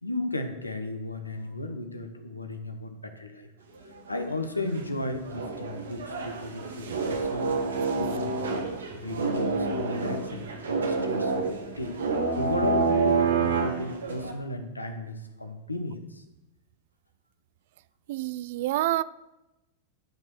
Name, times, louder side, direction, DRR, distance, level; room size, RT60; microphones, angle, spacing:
voice 1, 0.0-3.5 4.1-7.6 8.0-16.2, left 2 dB, 85° left, 1.1 m, -35 dB
sound 1, 3.9-4.3 4.8-4.9 5.0-14.3, right 4 dB, 70° right, 1.4 m, -28 dB
voice 2, 18.1-19.0, right 15 dB, 55° right, 0.3 m, -27 dB
12.0 x 5.3 x 6.4 m
figure-of-eight pair, 90°, 0 cm